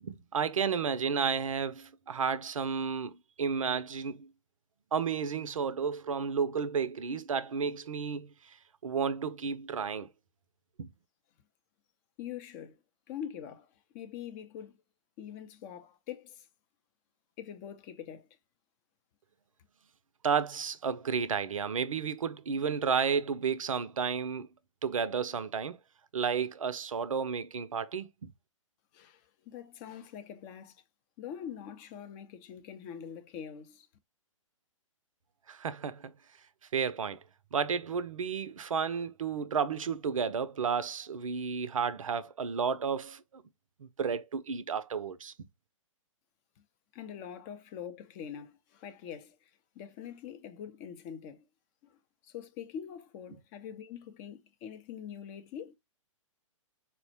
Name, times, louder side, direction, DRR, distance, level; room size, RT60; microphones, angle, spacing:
voice 1, 0.0-4.3 4.9-8.6 8.8-10.1 10.8-10.9 20.2-24.5 24.8-25.8 26.1-28.3 35.5-36.1 36.7-37.2 37.5-43.4 43.8-45.3, right 6 dB, 75° right, 0.5 m, -32 dB
voice 2, 12.2-12.8 13.1-14.8 15.2-16.5 17.4-18.3 28.9-30.8 31.2-33.9 46.9-49.5 49.8-51.4 51.8-52.0 52.2-55.7, left 9 dB, 30° left, 0.5 m, -44 dB
4.2 x 2.1 x 2.7 m
figure-of-eight pair, 120°, 17 cm